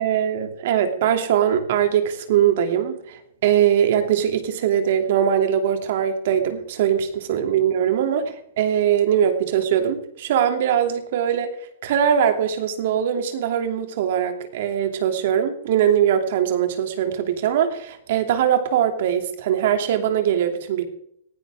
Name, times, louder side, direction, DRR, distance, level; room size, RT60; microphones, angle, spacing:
voice 1, 0.0-11.5 11.8-20.8, right 9 dB, 60° right, 6 dB, 2.8 m, -21 dB
19.0 x 16.0 x 3.6 m, 0.73 s
hypercardioid pair, 115°, 0 cm